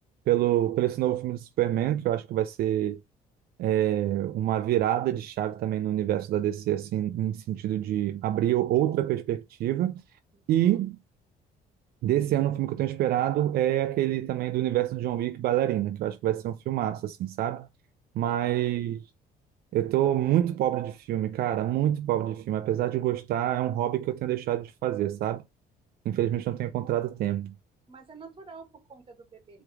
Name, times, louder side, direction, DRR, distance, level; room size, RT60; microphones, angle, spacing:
voice 1, 0.3-3.0 3.6-10.0 10.5-11.0 12.0-17.7 18.2-19.0 19.7-25.4 26.1-27.5, right 12 dB, 65° right, 0.5 m, -27 dB
voice 2, 10.3-10.8 18.2-18.5 26.3-26.4 27.9-29.6, right 4 dB, 30° right, 1.7 m, -49 dB
4.8 x 3.2 x 3.5 m
cardioid pair, 110°, 17 cm